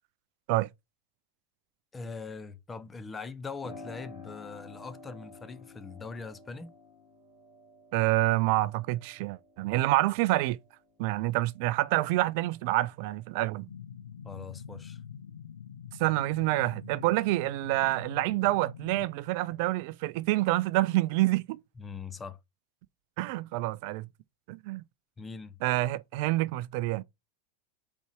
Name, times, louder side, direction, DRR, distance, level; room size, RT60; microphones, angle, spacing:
voice 1, 1.9-6.7 14.2-15.0 21.8-22.4 25.2-25.6, left 4 dB, 20° left, 0.8 m, -41 dB
Piano, 3.6-12.1 12.5-13.5, left 4 dB, 50° left, 2.8 m, -51 dB
voice 2, 7.9-10.6 11.0-13.7 16.0-21.6 23.2-24.1 24.5-24.8 25.6-27.0, right 18 dB, 55° right, 0.4 m, -27 dB
sound 1, 13.7-19.1, left 8 dB, 80° left, 0.4 m, -45 dB
5.4 x 4.4 x 4.5 m
hypercardioid pair, 90°, 0 cm